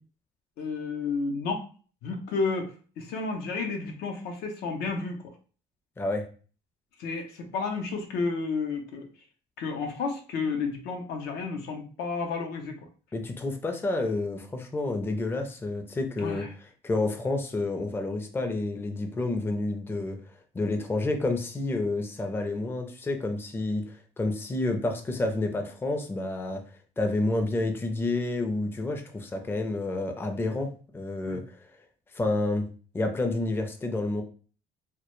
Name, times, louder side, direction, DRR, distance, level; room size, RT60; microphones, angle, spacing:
voice 1, 0.6-1.7 2.0-5.1 7.0-9.1 9.6-12.8 16.2-16.5 30.5-30.6 31.3-31.4, left 4 dB, 80° left, 4 dB, 0.5 m, -31 dB
voice 2, 13.1-16.4 16.8-20.2 20.5-23.8 24.2-26.6 27.0-31.4 32.1-32.7 32.9-34.2, left 2 dB, 15° left, 5 dB, 0.4 m, -29 dB
2.1 x 2.1 x 3.0 m, 0.40 s
cardioid pair, 110°, 17 cm